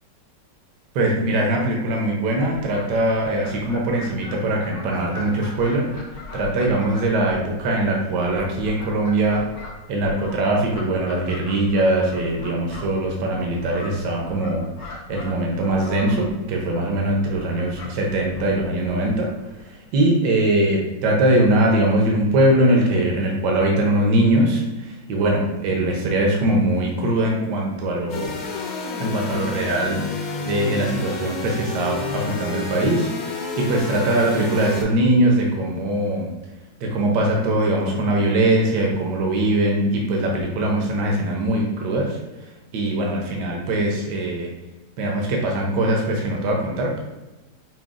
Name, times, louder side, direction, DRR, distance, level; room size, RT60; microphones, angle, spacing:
voice 1, 0.9-5.9 6.3-9.4 9.9-28.4 29.0-36.3 36.8-42.2 42.7-44.5 45.0-47.0, right 1 dB, 70° right, -1 dB, 1.3 m, -21 dB
Fowl, 2.4-19.7, left 3 dB, 60° left, 0.8 m, -41 dB
sound 1, 28.1-34.8, left 3 dB, 75° left, 1.4 m, -30 dB
6.0 x 2.3 x 2.4 m, 1.1 s
omnidirectional pair, 2.0 m